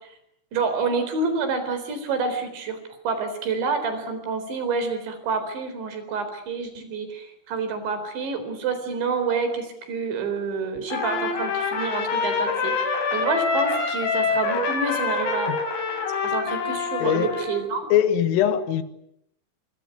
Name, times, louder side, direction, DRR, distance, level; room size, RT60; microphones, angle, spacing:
voice 1, 0.5-2.8 3.0-15.5 16.2-17.8, right 4 dB, 65° right, 6.2 m, -28 dB
Trumpet, 10.9-17.6, left 4 dB, 65° left, 6.5 m, -26 dB
voice 2, 17.0-17.4 17.9-18.8, left 10 dB, 90° left, 4.2 m, -21 dB
25.5 x 25.0 x 8.2 m
omnidirectional pair, 5.7 m